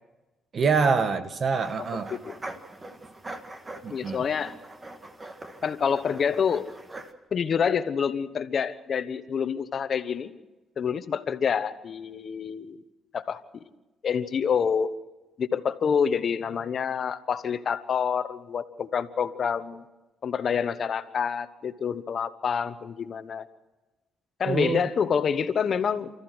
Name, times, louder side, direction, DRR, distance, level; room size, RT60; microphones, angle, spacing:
voice 1, 0.5-2.1 3.8-4.2 24.4-24.9, right 5 dB, 45° right, 10 dB, 1.5 m, -25 dB
sound 1, 1.5-7.1, right 2 dB, 25° right, 1.9 m, -42 dB
voice 2, 1.8-2.4 3.9-4.5 5.6-6.7 7.3-10.3 10.8-12.8 13.1-13.6 14.0-14.9 15.4-19.8 20.2-23.5 24.4-26.1, left 7 dB, 50° left, 12 dB, 1.1 m, -27 dB
29.0 x 14.0 x 6.3 m, 1.1 s
cardioid pair, 90°, 0 cm